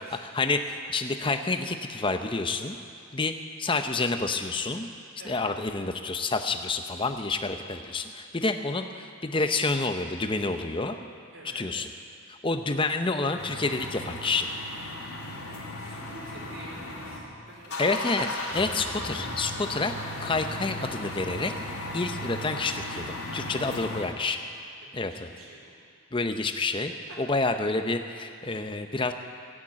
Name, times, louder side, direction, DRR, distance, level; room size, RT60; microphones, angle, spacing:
voice 1, 0.3-2.8 3.1-3.3 3.6-4.9 5.2-11.0 11.5-11.9 12.3-14.5 17.8-19.9 20.2-21.5 21.9-24.4 24.9-25.3 26.1-29.1, left 3 dB, 20° left, 7 dB, 0.7 m, -28 dB
voice 2, 5.2-5.5 11.3-11.7 15.2-17.8 23.2-23.9 24.8-25.7 27.1-27.2, right 2 dB, 70° right, -3 dB, 2.9 m, -48 dB
sound 1, 13.4-17.2 17.5-24.0, left 1 dB, 85° left, 2.9 m, -36 dB
16.0 x 8.9 x 8.7 m, 2.4 s
head